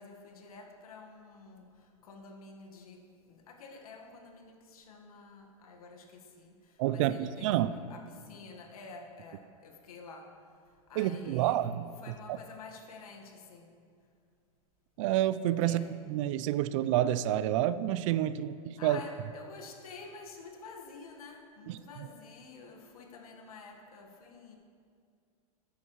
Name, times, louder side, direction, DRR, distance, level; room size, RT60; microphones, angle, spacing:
voice 1, 0.0-11.6 12.0-13.7 15.6-15.9 18.8-24.6, left 4 dB, 85° left, 3 dB, 1.6 m, -49 dB
voice 2, 6.8-7.7 11.0-11.9 15.0-19.0 21.7-21.8, right 12 dB, 60° right, 15 dB, 0.5 m, -29 dB
13.5 x 9.6 x 3.1 m, 2.3 s
hypercardioid pair, 115°, 18 cm